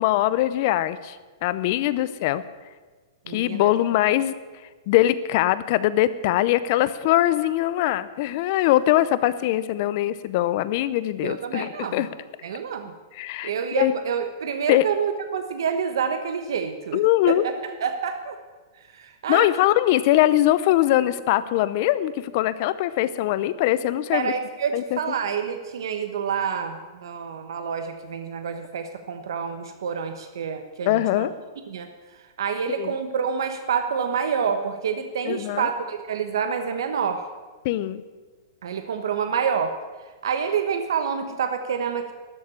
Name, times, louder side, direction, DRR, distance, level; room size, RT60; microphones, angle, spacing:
voice 1, 0.0-2.4 3.3-4.3 4.9-12.1 13.1-13.5 13.8-13.9 14.7-14.9 16.9-17.4 19.3-24.3 24.7-25.0 30.9-31.3 32.8-32.9 35.3-35.7 37.6-38.0, left 14 dB, 40° left, 15 dB, 0.6 m, -22 dB
voice 2, 3.2-3.7 11.2-12.1 12.4-12.9 13.4-17.0 17.3-17.5 17.8-18.4 18.9-19.5 24.1-31.3 31.7-31.9 32.4-37.3 38.6-39.7 40.2-42.1, right 6 dB, 75° right, 7 dB, 1.1 m, -27 dB
12.5 x 7.1 x 9.7 m, 1.3 s
hypercardioid pair, 165°, 2 cm